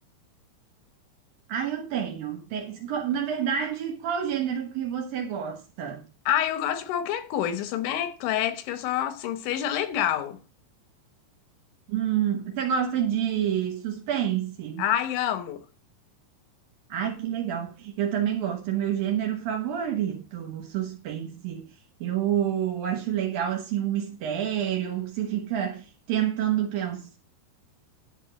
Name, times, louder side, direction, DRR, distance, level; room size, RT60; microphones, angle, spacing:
voice 1, 1.5-6.0 11.9-14.8 16.9-21.6 22.0-27.2, right 9 dB, 65° right, 2.5 m, -28 dB
voice 2, 6.3-10.4 14.8-15.6, left 10 dB, 85° left, 3.3 m, -27 dB
11.0 x 4.6 x 7.6 m
omnidirectional pair, 5.3 m